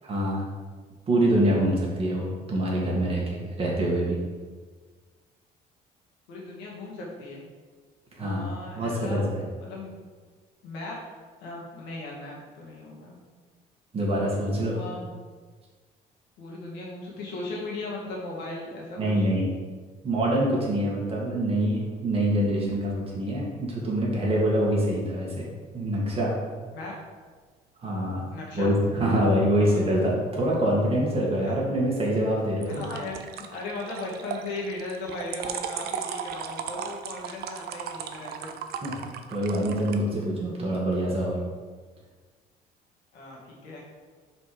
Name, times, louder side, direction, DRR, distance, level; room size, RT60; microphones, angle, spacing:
voice 1, 0.0-0.5 1.1-4.2 8.2-8.4 8.8-9.5 13.9-14.8 19.0-19.5 20.0-25.5 25.7-26.4 27.8-28.3 28.5-32.9 38.8-41.4, right 1 dB, 35° right, -3 dB, 2.0 m, -25 dB
voice 2, 6.3-7.4 8.2-9.2 9.6-9.9 10.6-11.0 11.4-13.2 14.6-15.1 16.4-19.3 26.7-26.9 28.3-28.7 29.6-29.8 31.4-31.5 32.7-38.5 43.1-43.8, left 2 dB, 85° left, -3 dB, 1.9 m, -37 dB
sound 1, 22.4-23.0 32.6-40.0, right 7 dB, 70° right, 0.6 m, -37 dB
5.4 x 4.3 x 4.9 m, 1.4 s
cardioid pair, 110°, 17 cm